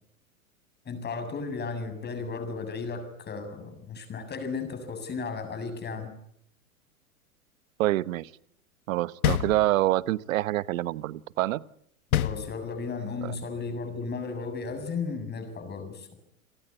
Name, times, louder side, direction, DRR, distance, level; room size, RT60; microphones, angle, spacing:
voice 1, 0.9-6.1 12.1-16.1, left 4 dB, 25° left, 8 dB, 7.4 m, -34 dB
voice 2, 7.8-8.3 8.9-11.6 13.2-13.3, right 16 dB, 65° right, 19 dB, 1.1 m, -26 dB
sound 1, 9.2-10.1 12.1-13.0, left 11 dB, 80° left, 1.7 m, -28 dB
30.0 x 19.0 x 9.8 m, 0.70 s
hypercardioid pair, 110°, 43 cm